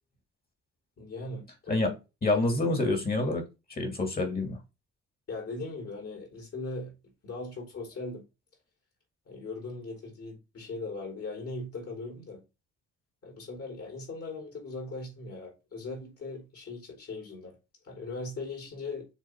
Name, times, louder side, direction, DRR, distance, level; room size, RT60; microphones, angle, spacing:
voice 1, 1.0-1.9 5.3-8.2 9.3-12.4 13.2-17.6 17.8-19.1, left 3 dB, 50° left, 4.0 m, -39 dB
voice 2, 2.2-3.4 3.7-4.6, left 2 dB, 30° left, 2.6 m, -27 dB
7.0 x 3.6 x 4.6 m
cardioid pair, 90°, 30 cm